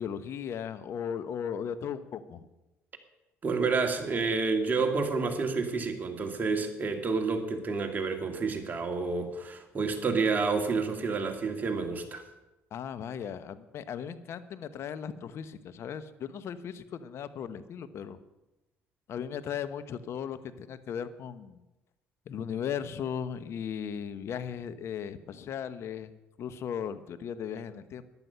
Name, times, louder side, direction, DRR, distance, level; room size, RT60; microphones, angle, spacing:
voice 1, 0.0-2.5 12.7-18.2 19.1-21.6 22.3-26.1 26.4-28.0, left 8 dB, 60° left, 13 dB, 1.0 m, -37 dB
voice 2, 3.4-12.3, right 4 dB, 35° right, 4 dB, 2.1 m, -29 dB
14.0 x 11.0 x 5.7 m, 0.99 s
supercardioid pair, 80°, 5 cm